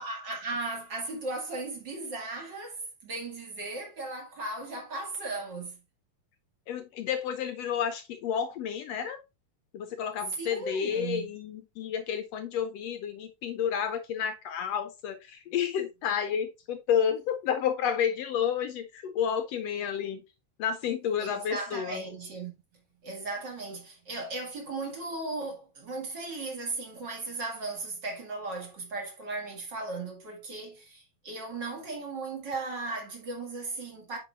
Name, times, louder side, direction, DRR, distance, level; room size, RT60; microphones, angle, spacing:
voice 1, 0.0-5.8 10.4-11.3 21.2-22.5 23.0-34.2, right 3 dB, 40° right, 2.4 m, -36 dB
voice 2, 6.7-9.2 9.7-20.2 20.6-22.0, left 8 dB, 75° left, 1.6 m, -30 dB
8.3 x 6.0 x 2.5 m
omnidirectional pair, 3.5 m